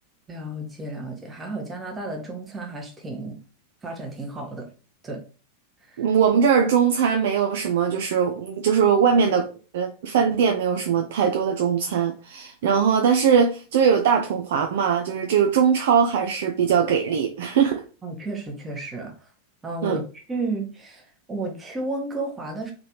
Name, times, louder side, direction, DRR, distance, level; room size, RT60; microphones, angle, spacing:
voice 1, 0.3-3.4 3.8-4.7 5.0-5.2 5.9-6.0 18.0-19.3 19.6-22.7, right 2 dB, 15° right, 1 dB, 1.2 m, -32 dB
voice 2, 6.0-9.5 9.7-17.8 19.8-20.0, right 7 dB, 55° right, 4 dB, 0.5 m, -21 dB
3.7 x 3.3 x 3.0 m, 0.35 s
figure-of-eight pair, 90°, 0 cm